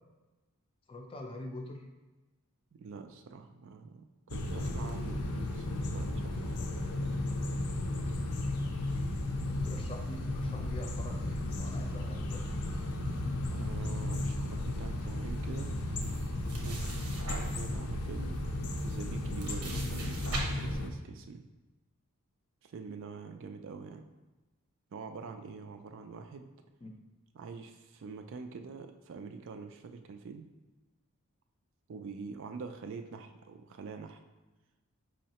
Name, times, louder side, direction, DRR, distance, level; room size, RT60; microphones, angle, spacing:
voice 1, 0.9-1.8 9.5-12.4 26.8-26.9, left 1 dB, 25° left, 3 dB, 0.4 m, -45 dB
voice 2, 2.8-6.4 13.5-15.7 16.6-18.4 18.8-21.4 22.6-24.0 24.9-26.5 27.3-30.5 31.9-34.2, right 4 dB, 55° right, 6 dB, 0.4 m, -45 dB
sound 1, 4.3-20.9, left 1 dB, 75° left, 0.5 m, -34 dB
sound 2, 16.0-17.7 18.4-18.5 18.8-20.4, right 2 dB, 90° right, 0.9 m, -41 dB
5.5 x 3.1 x 2.9 m, 1.1 s
head